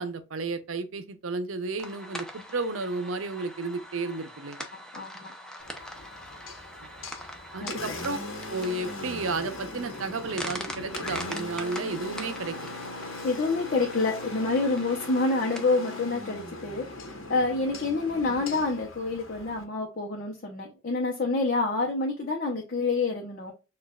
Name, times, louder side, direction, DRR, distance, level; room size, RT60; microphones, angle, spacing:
voice 1, 0.0-4.7 6.8-6.9 7.5-8.2 8.5-12.8, right 3 dB, 90° right, 0.6 m, -33 dB
sound 1, 1.8-17.1, equal, 5° left, 0.6 m, -43 dB
voice 2, 4.7-5.3 7.6-7.7 13.2-23.5, left 3 dB, 50° left, 0.8 m, -28 dB
Engine, 5.6-19.6, left 2 dB, 80° left, 1.0 m, -39 dB
6.3 x 2.5 x 2.3 m
head